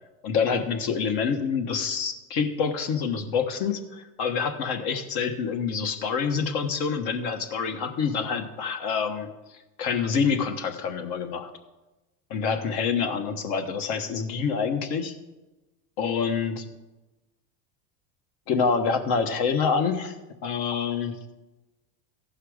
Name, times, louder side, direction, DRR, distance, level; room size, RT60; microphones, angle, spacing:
voice 1, 0.2-9.3 9.8-11.5 12.3-15.1 16.0-16.6 18.5-20.1 20.4-21.2, left 6 dB, 60° left, 7 dB, 1.3 m, -26 dB
15.5 x 5.6 x 5.0 m, 1.1 s
supercardioid pair, 105°, 42 cm